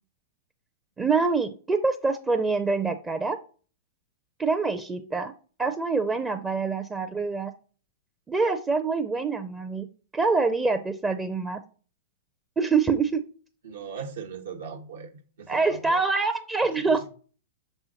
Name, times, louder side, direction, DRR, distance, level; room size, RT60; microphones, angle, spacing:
voice 1, 1.0-3.4 4.4-5.3 5.6-7.5 8.3-9.9 10.1-11.6 12.6-13.2 15.5-17.1, right 4 dB, 15° right, 0.6 m, -25 dB
voice 2, 13.6-15.1 15.4-16.0 16.8-17.0, right 6 dB, 70° right, 1.2 m, -39 dB
6.7 x 5.4 x 2.8 m
figure-of-eight pair, 105°, 0 cm